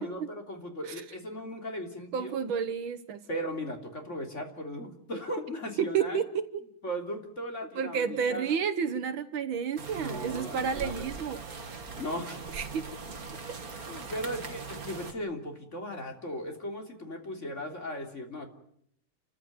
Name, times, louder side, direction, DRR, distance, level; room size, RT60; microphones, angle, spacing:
voice 1, 0.0-2.4 3.3-6.2 6.8-8.5 9.9-11.1 12.0-12.4 13.6-18.5, equal, 30° left, 3 dB, 3.6 m, -37 dB
voice 2, 2.1-3.2 5.8-6.7 7.8-11.8 12.5-12.8, right 7 dB, 65° right, 10 dB, 1.9 m, -31 dB
sound 1, 9.8-15.1, right 4 dB, 40° right, 2.6 m, -41 dB
29.5 x 14.5 x 9.4 m, 0.71 s
omnidirectional pair, 2.4 m